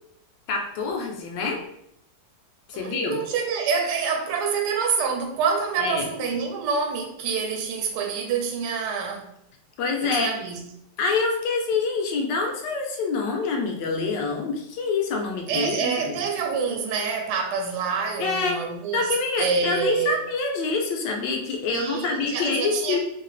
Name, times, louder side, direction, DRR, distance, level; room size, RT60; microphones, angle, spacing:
voice 1, 0.5-1.6 2.7-3.2 5.8-6.1 9.8-10.3 11.0-16.2 18.2-18.6 18.9-23.0, left 4 dB, 75° left, 2 dB, 1.2 m, -26 dB
voice 2, 2.7-9.3 10.0-10.6 15.5-19.1 19.4-20.2 21.7-23.0, right 5 dB, 70° right, 2 dB, 1.2 m, -27 dB
3.2 x 2.8 x 3.1 m, 0.76 s
omnidirectional pair, 2.0 m